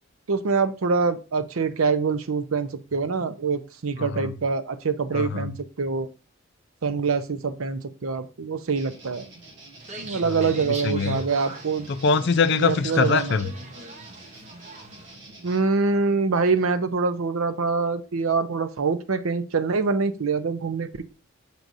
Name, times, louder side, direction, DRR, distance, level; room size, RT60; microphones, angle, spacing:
voice 1, 0.3-6.1 6.8-9.3 10.0-11.9 12.5-13.4 15.4-21.0, right 4 dB, 80° right, 0.6 m, -25 dB
voice 2, 4.0-4.3 5.1-5.5 10.2-10.5 10.8-11.2 11.9-13.5, left 5 dB, 55° left, 0.4 m, -23 dB
sound 1, 8.8-15.6, right 2 dB, 60° right, 1.4 m, -47 dB
sound 2, 9.8-15.1, right 1 dB, 35° right, 0.8 m, -41 dB
6.8 x 6.1 x 2.6 m
head